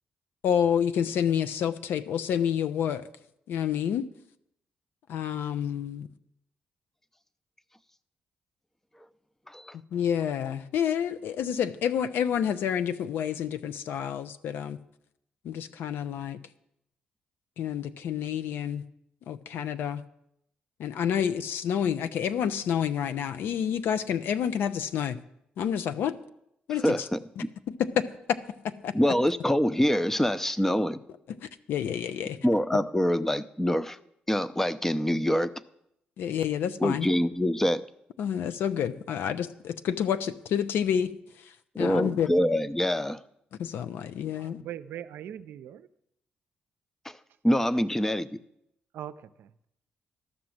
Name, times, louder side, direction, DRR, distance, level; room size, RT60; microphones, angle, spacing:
voice 1, 0.4-3.1 3.5-4.1 5.1-6.1 9.9-14.8 15.4-16.4 17.6-18.8 19.3-20.0 20.8-25.2 25.6-26.2 26.7-27.1 27.4-28.4 28.6-29.0 31.3-32.4 36.2-37.1 38.2-41.1 41.8-42.3 43.6-44.6, left 8 dB, 75° left, 12 dB, 0.6 m, -29 dB
voice 2, 26.8-27.5 28.9-31.0 32.4-34.0 34.3-35.5 36.8-37.8 41.8-43.2 47.4-48.3, equal, 10° left, 14 dB, 0.6 m, -25 dB
voice 3, 44.3-45.9 47.7-47.8 48.9-49.7, right 10 dB, 75° right, 12 dB, 0.5 m, -41 dB
13.0 x 6.0 x 7.7 m, 0.79 s
supercardioid pair, 60°, 4 cm